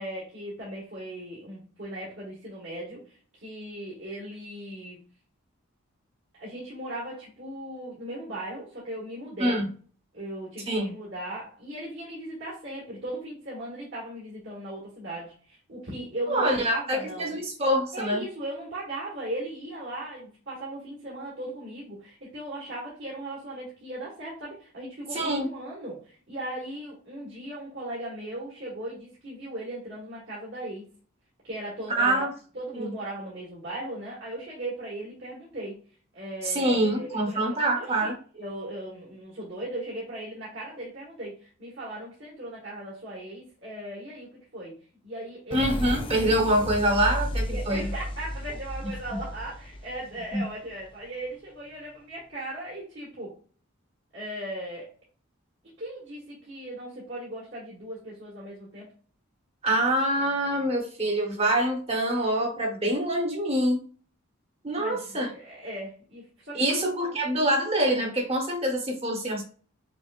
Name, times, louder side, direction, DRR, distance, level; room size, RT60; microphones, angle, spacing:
voice 1, 0.0-5.0 6.3-9.6 10.1-17.4 17.9-30.9 31.4-32.2 32.5-35.8 36.1-44.8 45.0-45.7 47.5-53.3 54.1-54.9 55.6-58.9 64.8-67.4, right 1 dB, 55° right, -6 dB, 1.6 m, -38 dB
voice 2, 16.3-18.2 25.1-25.5 32.0-32.3 32.7-32.9 36.4-38.2 45.5-47.9 50.3-50.4 59.6-63.8 64.6-65.3 66.5-69.4, right 1 dB, 25° right, 1 dB, 1.1 m, -25 dB
sound 1, 45.5-51.0, equal, 25° left, 0.5 m, -33 dB
6.0 x 2.5 x 2.5 m, 0.42 s
head